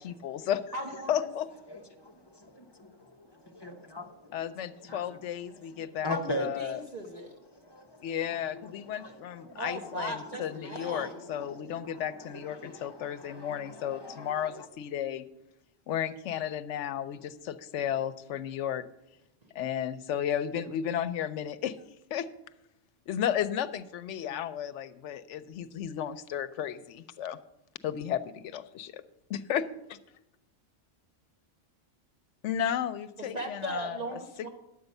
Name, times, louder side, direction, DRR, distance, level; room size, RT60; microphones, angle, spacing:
voice 1, 0.0-0.6 1.1-1.5 4.3-6.8 8.0-15.2 15.9-18.8 19.5-21.8 22.1-22.3 23.1-27.4 27.8-29.0 29.3-30.0 32.4-34.2, left 9 dB, 90° left, 13 dB, 0.9 m, -33 dB
voice 2, 0.7-1.3 6.1-7.3 9.5-11.2 33.2-34.5, equal, 35° right, 1 dB, 1.2 m, -37 dB
voice 3, 1.7-4.4 4.9-5.0 5.8-6.5 7.6-8.1 8.9-9.6 10.7-12.0 12.3-14.7, left 1 dB, 25° left, 5 dB, 0.7 m, -41 dB
11.0 x 8.0 x 5.3 m, 0.89 s
omnidirectional pair, 1.2 m